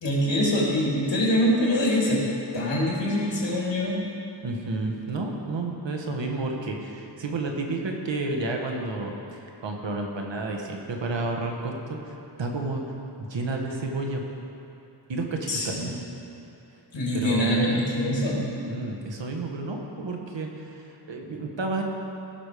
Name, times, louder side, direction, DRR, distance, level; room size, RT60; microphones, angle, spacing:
voice 1, 0.0-2.2 2.5-4.1 15.5-15.9 16.9-18.4, equal, 75° left, -4 dB, 2.9 m, -24 dB
voice 2, 4.4-12.0 12.4-12.8 13.2-14.2 15.1-15.9 17.1-17.6 18.7-21.8, right 2 dB, 75° right, 1 dB, 1.4 m, -31 dB
16.0 x 6.2 x 5.0 m, 2.9 s
wide cardioid pair, 75°, 45 cm